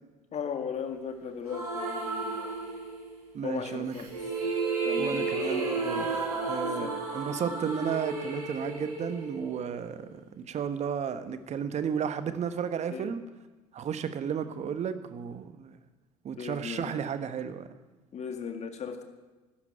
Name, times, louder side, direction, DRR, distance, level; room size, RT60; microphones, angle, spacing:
voice 1, 0.3-2.5 3.4-4.1 4.8-5.6 5.9-7.0 12.9-13.1 16.3-17.0 18.1-19.0, left 6 dB, 35° left, 7 dB, 2.0 m, -38 dB
sound 1, 1.5-3.2 3.9-10.0, right 3 dB, 80° right, 3.4 m, -32 dB
voice 2, 3.3-3.9 5.0-6.2 6.5-13.2 13.7-15.7 16.2-17.7, right 7 dB, 35° right, 11 dB, 1.3 m, -33 dB
12.5 x 10.5 x 9.2 m, 1.2 s
figure-of-eight pair, 60°, 19 cm